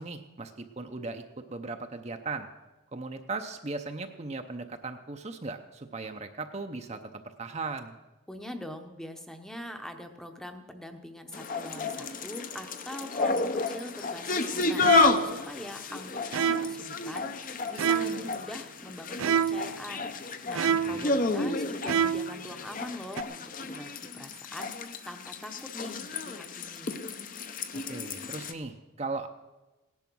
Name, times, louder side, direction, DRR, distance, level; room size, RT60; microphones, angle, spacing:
voice 1, 0.0-2.5 2.9-8.0 20.8-21.1 27.9-29.3, right 3 dB, 30° right, 6 dB, 0.7 m, -38 dB
voice 2, 8.3-14.8 15.2-27.0, left 1 dB, 5° left, 6 dB, 0.8 m, -43 dB
sound 1, 11.3-28.5, left 3 dB, 40° left, 0.8 m, -31 dB
sound 2, 14.8-15.4 16.3-16.9 17.8-18.3 19.2-19.8 20.5-21.1 21.9-22.4 23.2-23.3, right 7 dB, 75° right, 0.4 m, -27 dB
17.0 x 10.5 x 6.2 m, 1.1 s
head